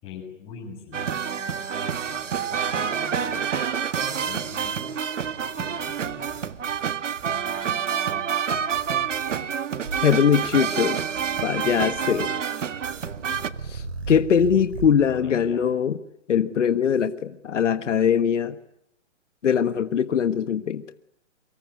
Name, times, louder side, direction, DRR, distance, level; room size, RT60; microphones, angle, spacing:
voice 1, 0.0-1.6 2.0-3.6 4.0-4.9 5.6-6.4 11.8-12.3 15.0-15.7, left 5 dB, 15° left, 1 dB, 6.8 m, -43 dB
sound 1, 0.9-13.5, right 7 dB, 80° right, 1.8 m, -28 dB
sound 2, 2.0-3.0 3.4-3.8 4.3-4.8 5.2-6.8 7.1-7.6 8.7-9.4 9.8-10.7 11.1-12.3 12.7-15.0, right 3 dB, 55° right, 6.0 m, -40 dB
voice 2, 10.0-11.0 11.4-12.3 13.6-16.0 16.3-18.6 19.4-20.8, left 7 dB, 75° left, 10 dB, 1.4 m, -22 dB
25.0 x 24.5 x 9.6 m, 0.76 s
hypercardioid pair, 175°, 37 cm